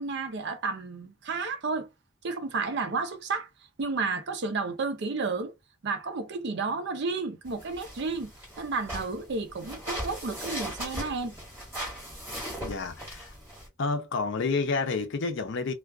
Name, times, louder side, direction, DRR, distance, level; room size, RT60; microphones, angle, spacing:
voice 1, 0.0-1.9 2.2-3.5 3.8-5.5 5.8-8.3 8.6-11.3, right 4 dB, 55° right, 0.5 m, -31 dB
sound 1, 7.5-13.7, equal, 10° right, 1.5 m, -38 dB
voice 2, 12.6-13.3 13.8-15.7, left 4 dB, 60° left, 0.6 m, -29 dB
2.3 x 2.3 x 2.3 m
head